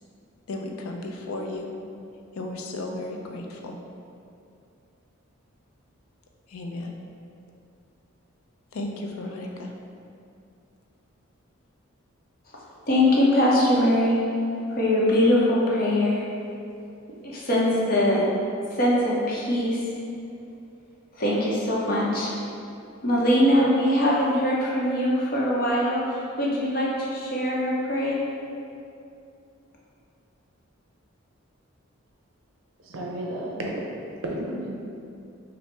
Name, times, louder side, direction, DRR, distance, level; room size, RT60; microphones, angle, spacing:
voice 1, 0.5-1.7 2.3-3.8 6.5-7.0 8.7-9.7, left 2 dB, 85° left, 1 dB, 0.5 m, -34 dB
voice 2, 12.9-14.2 14.7-16.2 17.2-18.3 18.7-19.8 21.1-22.4 23.0-28.2, left 1 dB, 40° left, -5 dB, 0.7 m, -22 dB
voice 3, 32.8-33.8 34.2-34.7, right 1 dB, 70° right, -2 dB, 0.6 m, -32 dB
5.5 x 2.1 x 3.3 m, 2.5 s
head